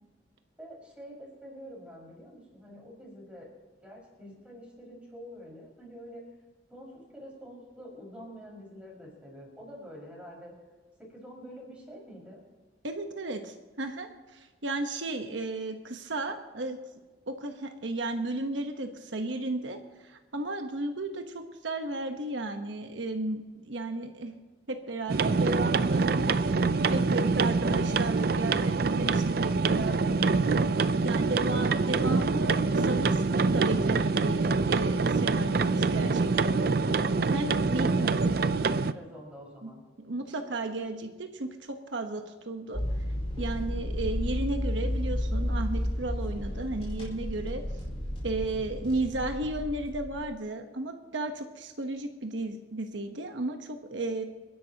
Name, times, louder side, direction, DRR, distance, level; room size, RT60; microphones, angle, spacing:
voice 1, 0.6-3.5 3.8-6.2 6.7-10.5 11.0-12.4 37.5-39.8, equal, 5° right, -4 dB, 5.4 m, -46 dB
voice 2, 12.8-16.8 17.3-24.3 24.7-26.5 26.9-30.1 31.0-36.6 37.3-38.2 39.6-39.7 40.0-42.8 43.4-47.6 48.2-54.2, right 2 dB, 85° right, 5 dB, 1.1 m, -34 dB
sound 1, 25.1-38.9, right 4 dB, 55° right, 0.5 m, -25 dB
sound 2, 42.7-50.3, equal, 30° left, 4.6 m, -32 dB
28.0 x 11.0 x 2.9 m, 1.3 s
head